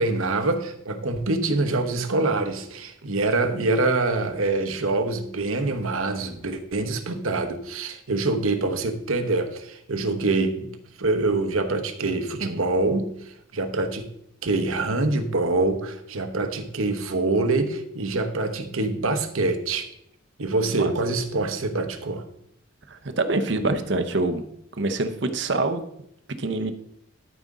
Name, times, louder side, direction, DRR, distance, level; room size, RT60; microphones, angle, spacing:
voice 1, 0.0-10.7 11.0-14.1 14.4-19.9 20.4-22.2, right 2 dB, 85° right, 6 dB, 1.1 m, -25 dB
voice 2, 22.9-24.4 24.8-25.8 26.4-26.7, right 2 dB, 60° right, 8 dB, 0.8 m, -25 dB
13.0 x 5.2 x 3.7 m, 0.74 s
head